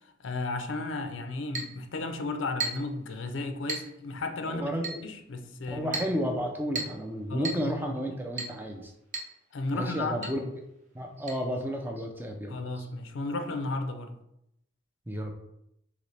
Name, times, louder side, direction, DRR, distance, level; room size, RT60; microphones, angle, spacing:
voice 1, 0.2-4.7 5.0-6.0 7.3-7.8 9.5-10.4 12.5-14.2, left 2 dB, 75° left, 0.5 m, -34 dB
Chink clink, 1.5-1.8 2.6-2.9 3.7-3.9 4.8-5.1 5.9-6.2 6.8-7.0 7.4-7.7 8.4-8.6 9.1-9.3 9.6-9.7 10.2-10.4 11.3-11.4, right 3 dB, 40° right, 0.8 m, -34 dB
voice 2, 4.5-5.1 5.7-8.9 9.7-10.5 10.9-12.9 15.1-15.3, equal, 10° right, 0.4 m, -32 dB
3.9 x 3.0 x 3.2 m
head